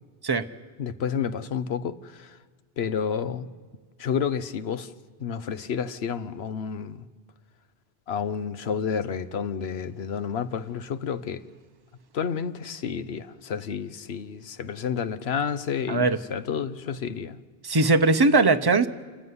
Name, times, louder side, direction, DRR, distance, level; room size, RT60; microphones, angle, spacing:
voice 1, 0.8-2.4 2.8-3.5 4.0-4.9 5.2-7.1 8.1-11.4 12.1-17.4, left 7 dB, 85° left, 1.1 m, -30 dB
voice 2, 15.9-16.2 17.6-18.9, right 3 dB, 25° right, 0.8 m, -20 dB
27.5 x 15.0 x 9.6 m
omnidirectional pair, 1.0 m